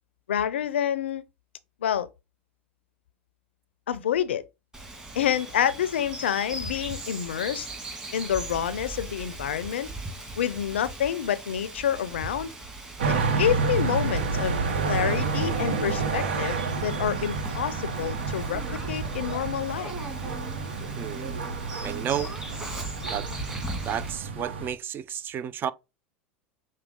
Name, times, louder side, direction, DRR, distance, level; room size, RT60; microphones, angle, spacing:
voice 1, 0.3-1.2 1.8-2.1 3.9-4.4 5.1-7.7 8.1-9.9 10.4-12.5 13.4-14.6 14.8-19.9, left 9 dB, 90° left, 0.4 m, -28 dB
Bird vocalization bird call bird song, 4.7-24.1, right 2 dB, 10° right, 1.7 m, -39 dB
sound 1, 13.0-24.7, right 4 dB, 85° right, 0.9 m, -29 dB
voice 2, 21.0-21.4 21.8-22.3 23.1-23.3 23.8-25.7, right 9 dB, 35° right, 0.4 m, -32 dB
6.1 x 2.2 x 3.6 m
hypercardioid pair, 95°, 6 cm